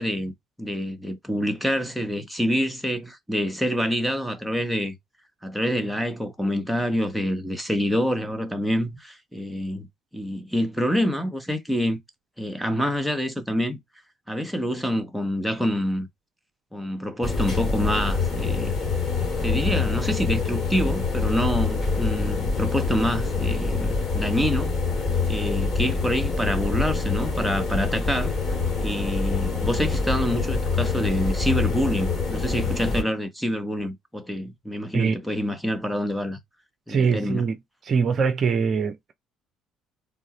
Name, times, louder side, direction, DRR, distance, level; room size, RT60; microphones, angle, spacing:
voice 1, 0.0-5.0 5.4-9.9 10.1-12.0 12.4-13.8 14.3-16.1 16.7-18.7 19.4-24.8 25.3-28.3 28.8-36.4 36.9-37.4, equal, ahead, 1.1 m, -26 dB
sound 1, 17.2-33.0, left 4 dB, 35° left, 2.6 m, -25 dB
voice 2, 36.9-37.6 37.8-39.1, right 5 dB, 40° right, 0.6 m, -23 dB
3.8 x 3.5 x 3.1 m
figure-of-eight pair, 50°, 0 cm